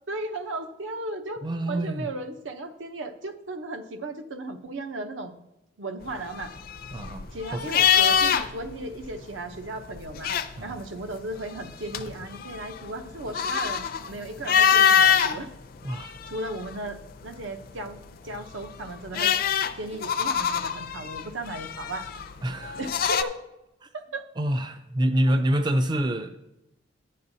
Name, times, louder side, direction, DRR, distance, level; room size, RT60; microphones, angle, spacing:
voice 1, 0.1-5.4 5.8-6.5 7.3-10.3 10.6-15.5 16.3-18.0 18.2-19.4 19.8-22.0 22.7-23.4 23.9-24.3, right 2 dB, 75° right, 7 dB, 0.8 m, -36 dB
voice 2, 1.4-2.1 6.9-7.7 10.6-10.8 15.8-16.2 22.4-22.8 23.8-23.9 24.4-26.4, right 1 dB, 25° right, 8 dB, 0.3 m, -26 dB
sound 1, 6.2-8.7 9.0-9.1 10.0-10.9 11.4-15.4 15.9-16.9 18.4-23.2, left 8 dB, 50° left, 0.4 m, -24 dB
11.5 x 8.5 x 2.7 m, 0.91 s
head